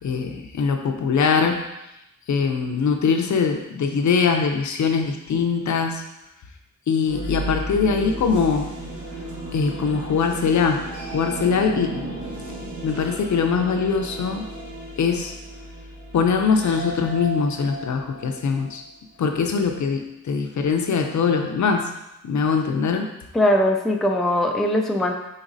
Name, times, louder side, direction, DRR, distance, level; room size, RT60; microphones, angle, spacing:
voice 1, 0.0-1.7 2.3-6.0 6.9-8.7 9.5-12.0 12.8-14.4 15.0-15.3 16.1-18.8 19.2-21.9 22.2-23.1, left 5 dB, 65° left, 4 dB, 0.6 m, -22 dB
sound 1, 7.0-18.9, right 1 dB, 70° right, 1.5 m, -34 dB
voice 2, 23.3-25.1, left 1 dB, ahead, 2 dB, 0.3 m, -20 dB
5.0 x 3.9 x 2.6 m, 0.89 s
wide cardioid pair, 110°, 32 cm